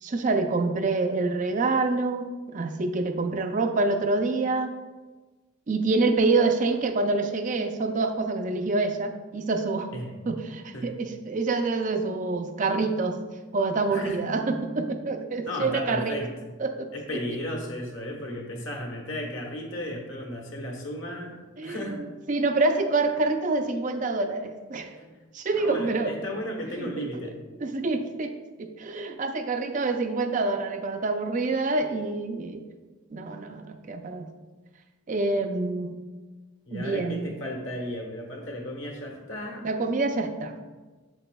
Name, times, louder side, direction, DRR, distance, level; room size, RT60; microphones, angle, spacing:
voice 1, 0.0-4.7 5.7-9.9 10.3-13.2 13.5-16.2 16.6-16.9 17.3-17.4 21.6-25.0 25.3-26.1 26.8-27.1 27.6-28.3 28.6-32.6 33.1-34.3 35.1-36.0 36.7-37.3 39.6-40.6, right 3 dB, 35° right, 5 dB, 0.4 m, -26 dB
voice 2, 15.4-16.3 16.9-21.3 21.6-22.0 25.0-25.1 25.5-27.5 36.7-39.7, equal, 60° left, 1 dB, 1.2 m, -34 dB
8.1 x 7.2 x 2.2 m, 1.3 s
head